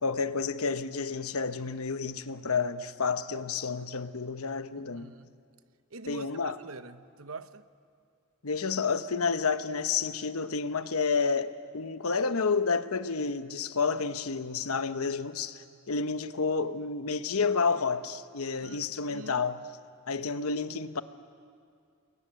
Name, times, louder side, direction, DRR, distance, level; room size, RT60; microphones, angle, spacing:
voice 1, 0.0-5.1 6.1-6.6 8.4-19.6 20.1-21.0, left 5 dB, 80° left, 1.0 m, -30 dB
voice 2, 4.8-5.3 5.9-7.6 18.6-19.4, right 3 dB, 70° right, 1.0 m, -45 dB
29.0 x 21.5 x 9.4 m
head